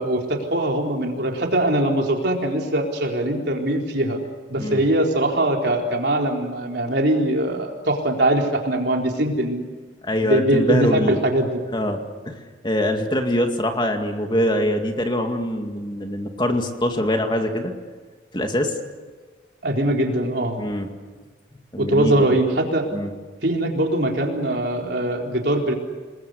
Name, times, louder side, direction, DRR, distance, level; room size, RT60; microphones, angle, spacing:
voice 1, 0.0-4.2 4.5-9.7 10.2-11.6 19.6-20.6 21.8-22.9 23.4-25.7, right 1 dB, 60° right, 1 dB, 4.1 m, -22 dB
voice 2, 10.0-11.2 11.7-12.0 12.3-17.7 18.3-18.7 20.6-20.9 21.7-22.3 22.9-23.1, left 1 dB, 25° left, 4 dB, 2.3 m, -23 dB
28.5 x 21.5 x 8.3 m, 1.4 s
head